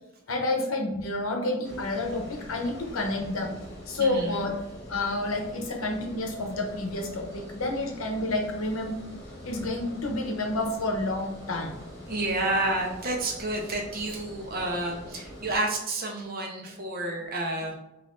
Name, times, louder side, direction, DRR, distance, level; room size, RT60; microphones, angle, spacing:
voice 1, 0.3-3.5 3.9-4.5 4.9-9.0 9.4-11.7, left 2 dB, 75° left, 2 dB, 0.8 m, -29 dB
Water, 1.6-15.6, equal, 50° left, 1.1 m, -44 dB
voice 2, 4.0-4.5 12.1-17.7, right 2 dB, 45° right, 0 dB, 0.7 m, -30 dB
5.4 x 2.5 x 2.5 m, 0.91 s
head